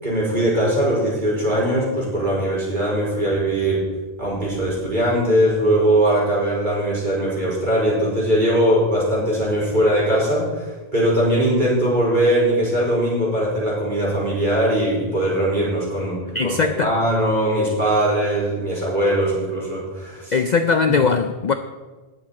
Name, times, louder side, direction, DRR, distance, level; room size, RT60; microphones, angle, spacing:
voice 1, 0.0-3.8 4.2-16.2 16.4-20.3, right 1 dB, 40° right, -6 dB, 5.0 m, -20 dB
voice 2, 16.3-17.0 20.3-21.5, left 5 dB, 50° left, 8 dB, 0.6 m, -19 dB
19.5 x 7.1 x 4.3 m, 1.3 s
omnidirectional pair, 1.2 m